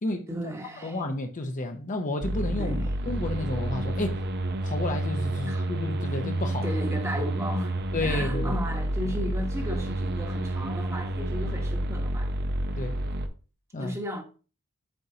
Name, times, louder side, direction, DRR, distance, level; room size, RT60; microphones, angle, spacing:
voice 1, 0.3-1.0 2.6-2.9 5.5-5.6 6.6-7.8 8.0-12.3 13.8-14.2, equal, 15° right, 1.1 m, -34 dB
voice 2, 0.8-2.8 3.1-4.2 4.6-6.7 7.2-7.3 7.9-8.6 12.8-13.0 13.7-14.0, left 2 dB, 35° left, 0.6 m, -31 dB
sound 1, 2.2-13.3, right 1 dB, 50° right, 0.6 m, -29 dB
7.7 x 4.5 x 2.7 m
head